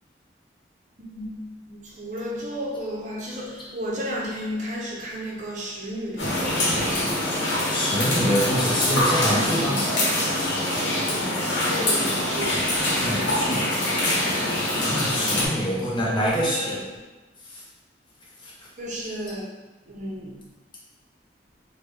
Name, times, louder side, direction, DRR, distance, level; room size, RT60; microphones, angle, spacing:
voice 1, 1.0-7.0 8.4-9.9 11.6-12.8 15.4-15.6 16.3-17.0 18.8-19.4 19.9-20.5, equal, 40° right, -4 dB, 0.6 m, -33 dB
sound 1, 6.2-15.5, left 1 dB, 85° left, 0.8 m, -24 dB
voice 2, 7.7-9.8 13.0-13.7 14.9-16.8 17.5-17.6 18.4-18.5, equal, 25° left, -5 dB, 0.6 m, -25 dB
3.3 x 2.1 x 3.3 m, 1.1 s
head